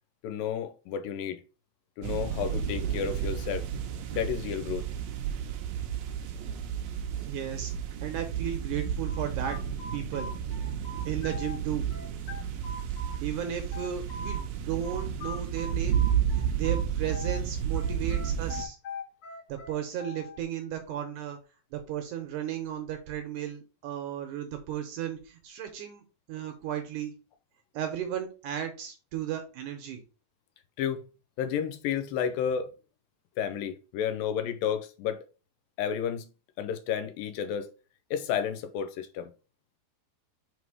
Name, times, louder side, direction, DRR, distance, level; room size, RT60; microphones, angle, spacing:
voice 1, 0.2-1.4 2.0-3.7 4.1-4.9 30.8-31.0 31.4-32.7 33.4-35.2 35.8-36.3 36.6-37.7 38.1-39.3, left 8 dB, 80° left, 2.3 m, -31 dB
sound 1, 2.0-18.6, right 8 dB, 90° right, 1.5 m, -32 dB
voice 2, 7.3-7.7 8.0-9.6 9.9-10.3 11.1-11.9 13.2-16.0 16.3-18.8 19.5-21.4 21.7-26.0 26.3-27.1 27.7-30.0, right 10 dB, 75° right, 2.0 m, -35 dB
sound 2, 9.0-11.6 11.9-14.4 14.8-17.4 17.7-20.4, left 3 dB, 60° left, 1.6 m, -42 dB
5.1 x 4.1 x 4.8 m
omnidirectional pair, 4.2 m